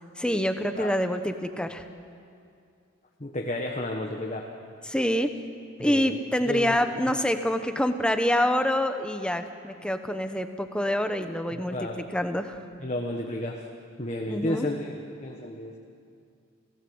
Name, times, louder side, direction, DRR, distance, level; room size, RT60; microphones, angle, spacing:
voice 1, 0.2-1.9 4.9-5.3 5.8-12.6 14.3-14.7, equal, 5° left, 8 dB, 1.0 m, -26 dB
voice 2, 3.2-4.5 5.8-6.1 6.4-6.8 7.0-7.1 11.5-12.0 12.8-13.7 14.0-14.9 15.2-15.8, left 1 dB, 35° left, 1 dB, 1.3 m, -32 dB
30.0 x 17.0 x 7.9 m, 2.4 s
head